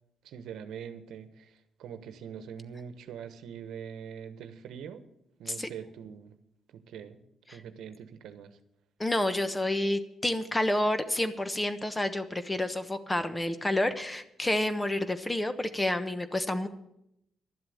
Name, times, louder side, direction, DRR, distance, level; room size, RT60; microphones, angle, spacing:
voice 1, 0.2-5.0 5.4-6.4 6.7-7.2 7.5-8.6, right 8 dB, 80° right, 10 dB, 1.1 m, -43 dB
voice 2, 9.0-16.7, left 1 dB, 15° left, 11 dB, 1.1 m, -29 dB
12.0 x 7.7 x 9.3 m, 0.81 s
cardioid pair, 90°, 0 cm